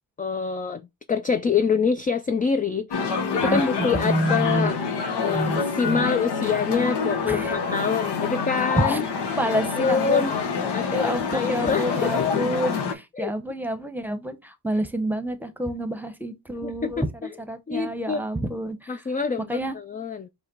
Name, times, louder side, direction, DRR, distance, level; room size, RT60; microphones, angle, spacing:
voice 1, 0.2-0.8 1.1-4.8 5.2-9.0 9.5-10.3 10.7-12.5 13.2-13.3 16.6-17.3 17.7-18.2 18.9-20.3, left 5 dB, 20° left, 0.3 m, -26 dB
sound 1, 2.9-12.9, left 5 dB, 80° left, 0.9 m, -27 dB
voice 2, 4.0-4.7 5.3-6.0 7.3-7.6 8.8-9.0 9.4-10.3 10.6-19.0 19.5-19.8, right 1 dB, 5° right, 0.9 m, -28 dB
5.2 x 2.2 x 3.8 m
cardioid pair, 55°, 40 cm